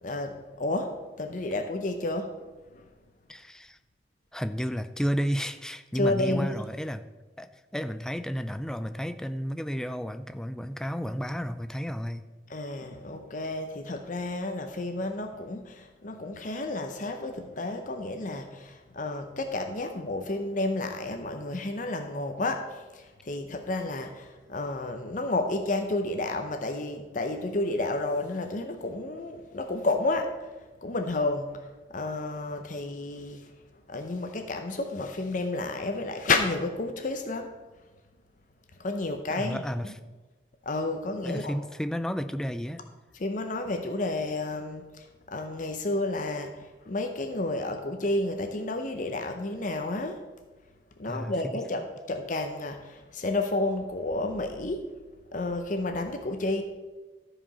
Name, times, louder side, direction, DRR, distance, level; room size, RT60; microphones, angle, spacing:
voice 1, 0.0-2.9 5.9-6.5 12.5-30.5 30.8-33.5 33.9-37.5 38.8-39.9 40.6-41.6 43.1-50.3 51.0-54.9 55.3-56.6, left 2 dB, 45° left, 6 dB, 0.7 m, -31 dB
voice 2, 3.3-3.8 4.3-7.1 7.4-12.3 39.3-39.9 41.2-42.8 51.1-51.3, equal, 5° left, 10 dB, 0.4 m, -32 dB
13.5 x 5.0 x 5.6 m, 1.2 s
head